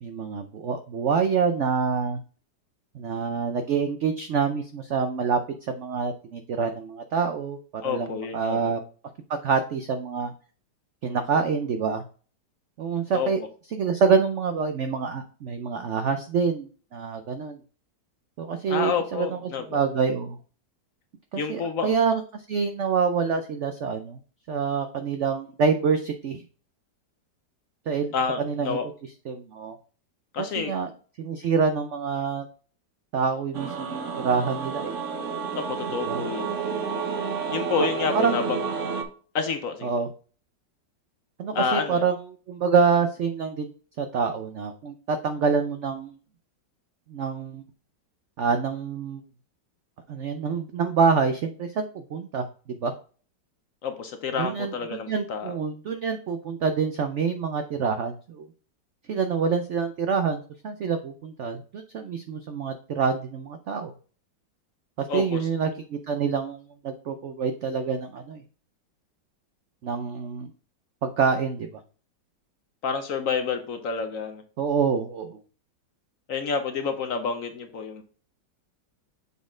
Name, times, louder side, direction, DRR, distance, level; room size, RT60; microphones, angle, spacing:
voice 1, 0.0-2.2 2.9-8.8 9.3-10.3 11.0-12.0 12.8-13.4 13.7-17.6 18.4-19.4 19.7-20.4 21.3-24.2 24.5-26.4 27.9-28.8 29.3-29.7 30.6-30.9 31.2-32.5 33.1-35.0 36.1-36.2 37.8-37.9 38.1-38.4 39.8-40.1 41.4-42.2 42.5-43.7 44.0-46.1 47.1-47.6 48.4-49.2 50.1-52.5 52.8-52.9 54.4-58.5 59.1-63.9 65.0-68.4 69.8-70.5 71.0-71.8 74.6-75.4, right 5 dB, 80° right, 8 dB, 0.6 m, -26 dB
voice 2, 7.8-8.6 13.1-13.3 18.7-19.8 21.3-22.0 28.1-28.8 30.3-30.7 35.5-36.6 37.5-38.6 39.3-39.9 41.5-42.0 53.8-55.5 65.1-65.5 72.8-74.4 76.3-78.0, left 5 dB, 60° left, 7 dB, 0.9 m, -29 dB
sound 1, 33.5-39.0, right 5 dB, 55° right, 1.0 m, -30 dB
7.0 x 4.1 x 3.7 m, 0.39 s
omnidirectional pair, 1.9 m